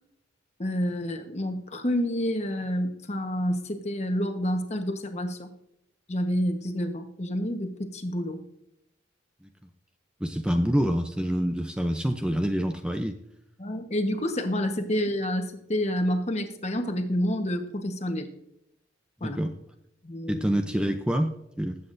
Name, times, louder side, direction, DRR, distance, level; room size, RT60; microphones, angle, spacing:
voice 1, 0.6-5.6 6.1-8.4 13.6-18.3 19.2-19.4 20.0-20.5, equal, 35° left, 6 dB, 1.1 m, -28 dB
voice 2, 10.2-13.2 19.4-19.5 20.3-21.8, equal, 5° right, 5 dB, 0.5 m, -26 dB
20.0 x 8.2 x 2.6 m, 0.83 s
head